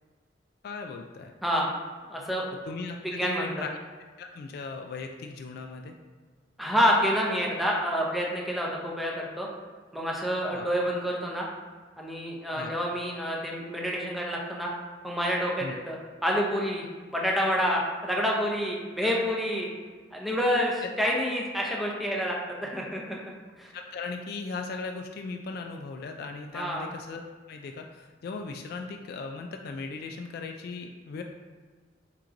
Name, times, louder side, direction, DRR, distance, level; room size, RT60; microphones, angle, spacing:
voice 1, 0.6-1.3 2.7-3.7 4.2-6.0 10.5-10.6 12.5-12.7 15.6-15.8 19.0-19.2 21.0-21.1 23.7-31.2, left 4 dB, 55° left, 4 dB, 0.3 m, -38 dB
voice 2, 1.4-1.7 2.1-2.4 3.0-3.5 6.6-9.5 9.9-11.5 12.0-14.7 15.0-16.8 17.1-19.7 20.1-22.4 22.6-23.2 23.6-23.7 26.5-26.9, equal, ahead, -3 dB, 0.6 m, -28 dB
4.4 x 3.7 x 2.5 m, 1.5 s
head